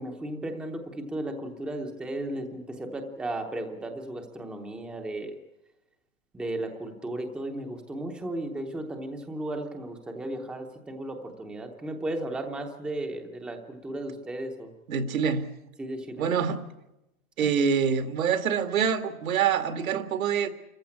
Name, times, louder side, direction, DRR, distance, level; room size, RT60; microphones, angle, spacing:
voice 1, 0.0-5.3 6.3-14.7 15.8-16.2, right 1 dB, ahead, 4 dB, 0.8 m, -35 dB
voice 2, 14.9-15.5 16.2-16.6 17.4-20.5, right 7 dB, 75° right, 8 dB, 2.2 m, -25 dB
26.5 x 15.0 x 8.6 m, 0.92 s
hypercardioid pair, 160°, 42 cm